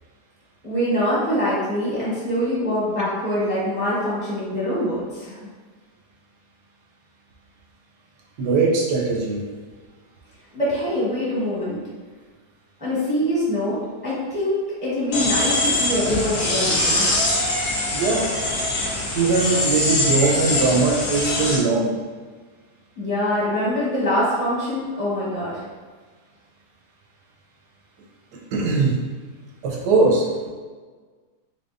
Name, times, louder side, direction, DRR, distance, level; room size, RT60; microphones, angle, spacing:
voice 1, 0.6-5.4 10.5-11.8 12.8-17.1 23.0-25.6, equal, 5° right, -9 dB, 1.1 m, -24 dB
voice 2, 8.4-9.4 17.9-18.3 19.1-21.9 28.5-29.0 29.6-30.5, right 3 dB, 80° right, -1 dB, 1.3 m, -20 dB
sound 1, 15.1-21.6, left 2 dB, 80° left, 1.4 m, -23 dB
4.0 x 3.5 x 2.5 m, 1.4 s
omnidirectional pair, 1.8 m